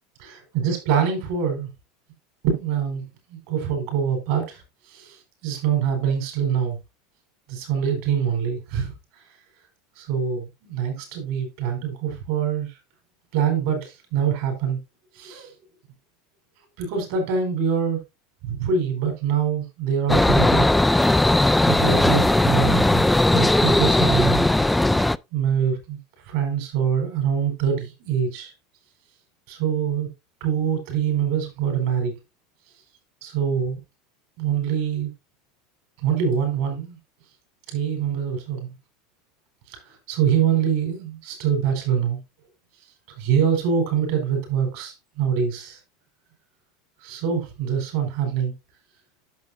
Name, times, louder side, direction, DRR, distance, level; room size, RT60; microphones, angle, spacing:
voice 1, 0.2-1.7 2.4-4.6 4.9-6.8 7.5-8.9 10.0-12.8 13.3-14.8 15.1-15.5 16.8-18.0 18.4-20.6 21.6-23.1 23.3-24.9 25.3-26.0 26.3-28.5 29.5-30.1 30.4-32.1 33.2-33.8 34.4-35.1 36.0-37.0 37.7-38.7 39.7-39.8 40.1-42.2 43.2-45.8 47.0-48.5, right 7 dB, 65° right, 4.5 m, -24 dB
sound 1, 20.1-25.2, left 1 dB, 5° left, 0.3 m, -18 dB
10.5 x 6.7 x 2.6 m
hypercardioid pair, 90°, 0 cm